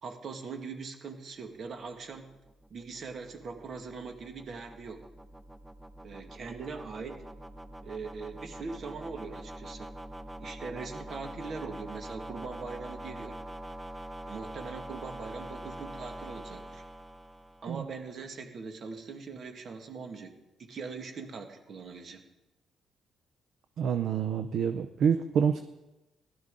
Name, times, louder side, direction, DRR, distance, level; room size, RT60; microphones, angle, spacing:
voice 1, 0.0-2.3 2.7-5.0 6.0-7.2 7.8-9.9 10.4-13.4 14.3-16.8 17.6-22.2, right 4 dB, 55° right, 5 dB, 1.8 m, -41 dB
sound 1, 2.0-18.0, right 1 dB, 10° right, 0.7 m, -44 dB
voice 2, 23.8-25.6, right 7 dB, 70° right, 9 dB, 0.5 m, -27 dB
16.0 x 12.0 x 3.8 m, 1.0 s
cardioid pair, 90°, 0 cm